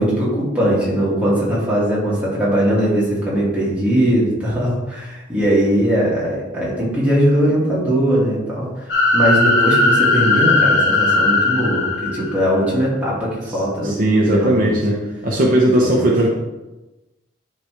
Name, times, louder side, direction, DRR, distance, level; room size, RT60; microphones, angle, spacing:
voice 1, 0.0-14.8 15.8-16.0, equal, 10° right, -8 dB, 2.3 m, -20 dB
sound 1, 8.9-12.6, left 2 dB, 70° left, 1.6 m, -17 dB
voice 2, 13.8-16.3, right 1 dB, 45° right, -2 dB, 0.9 m, -17 dB
10.0 x 3.5 x 3.3 m, 1.0 s
head